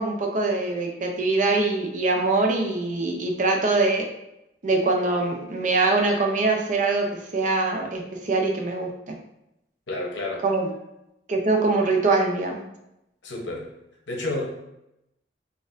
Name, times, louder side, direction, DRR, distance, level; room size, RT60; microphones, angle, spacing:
voice 1, 0.0-4.1 4.6-9.1 10.4-10.7 11.3-12.6, right 3 dB, 45° right, 2 dB, 0.5 m, -23 dB
voice 2, 9.9-10.4 13.2-13.7 14.1-14.5, left 2 dB, 85° left, -1 dB, 0.9 m, -30 dB
4.0 x 2.4 x 2.5 m, 0.86 s
head